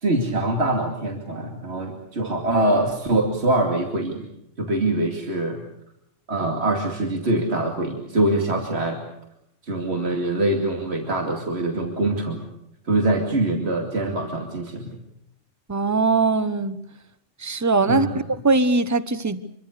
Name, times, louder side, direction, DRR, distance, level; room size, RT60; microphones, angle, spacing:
voice 1, 0.0-4.3 4.6-5.6 6.3-9.0 9.6-12.4 12.8-14.9 17.9-18.2, right 2 dB, 65° right, 2.9 m, -24 dB
voice 2, 15.7-16.8 17.4-18.1 18.4-19.4, right 3 dB, 15° right, 1.0 m, -20 dB
26.0 x 23.5 x 6.7 m
omnidirectional pair, 1.2 m